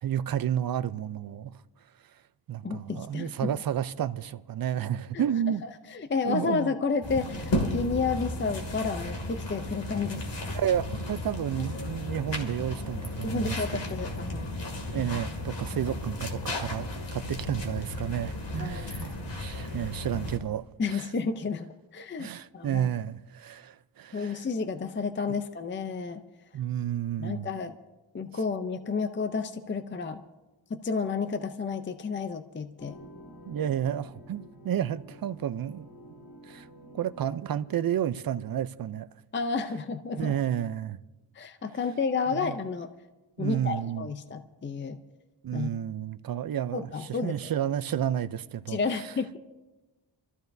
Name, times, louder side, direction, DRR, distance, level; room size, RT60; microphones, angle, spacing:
voice 1, 0.0-1.5 2.5-5.6 6.2-6.7 10.5-13.6 14.9-20.6 20.9-21.1 22.2-24.4 26.5-27.5 33.5-35.9 36.4-36.7 36.9-39.1 40.2-41.0 42.3-42.5 43.4-44.1 45.4-49.0, right 10 dB, 50° right, 0.5 m, -31 dB
voice 2, 2.6-3.5 5.1-5.2 5.6-10.2 13.2-14.6 15.9-16.0 17.5-17.6 18.6-18.9 20.1-20.3 20.8-22.9 24.1-26.2 27.2-27.8 28.1-30.2 30.7-33.0 39.3-40.4 41.3-42.9 43.4-45.0 45.5-45.7 46.7-47.3 48.7-49.4, left 4 dB, 25° left, 0.5 m, -31 dB
sound 1, 7.0-20.4, left 1 dB, 70° left, 2.4 m, -34 dB
sound 2, 32.8-37.9, right 1 dB, 50° left, 2.3 m, -50 dB
27.0 x 14.0 x 2.6 m
wide cardioid pair, 160°, 45 cm